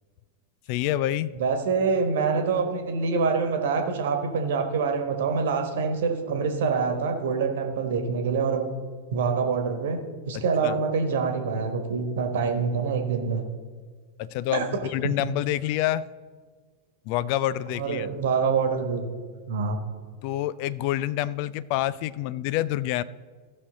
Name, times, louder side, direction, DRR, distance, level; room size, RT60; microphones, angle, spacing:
voice 1, 0.7-1.3 10.3-10.8 14.2-16.1 17.1-18.1 20.2-23.0, left 13 dB, 45° left, 18 dB, 0.3 m, -27 dB
voice 2, 1.3-8.6 9.1-10.0 10.3-13.4 14.5-14.7 15.0-15.1 17.7-19.1 19.5-19.8, right 5 dB, 55° right, 5 dB, 1.3 m, -25 dB
15.5 x 6.1 x 3.8 m, 1.6 s
figure-of-eight pair, 90°, 0 cm